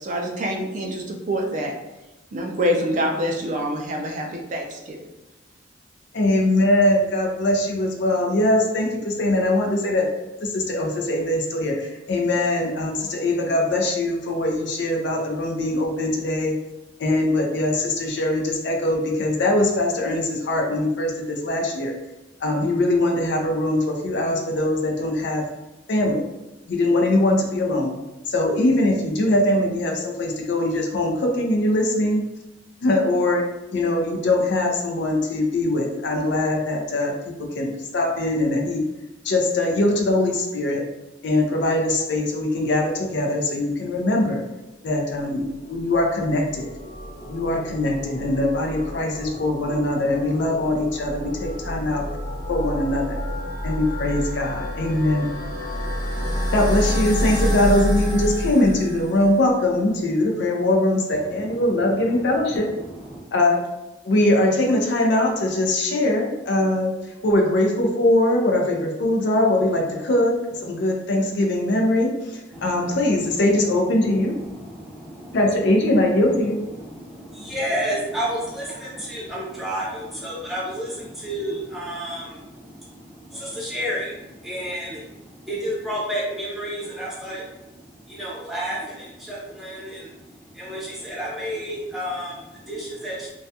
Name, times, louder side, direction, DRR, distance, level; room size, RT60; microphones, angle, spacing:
voice 1, 0.0-1.8 2.3-5.0, equal, 40° right, 1 dB, 0.3 m, -26 dB
voice 2, 6.1-10.1 10.4-16.5 17.0-21.9 22.4-25.4 25.9-26.2 26.7-28.0 28.3-32.2 32.8-33.4 33.7-38.8 39.2-40.8 41.2-44.4 44.8-46.7 47.3-52.0 52.5-53.2 53.6-55.3 56.5-62.7 63.3-63.6 64.0-66.9 67.2-74.3 75.3-76.6, left 1 dB, 65° left, 1 dB, 0.4 m, -22 dB
sound 1, 45.3-59.5, equal, 80° left, 1.0 m, -29 dB
voice 3, 61.1-63.2 72.5-75.4 75.9-93.3, equal, ahead, -6 dB, 0.6 m, -32 dB
2.3 x 2.1 x 2.7 m, 1.0 s
head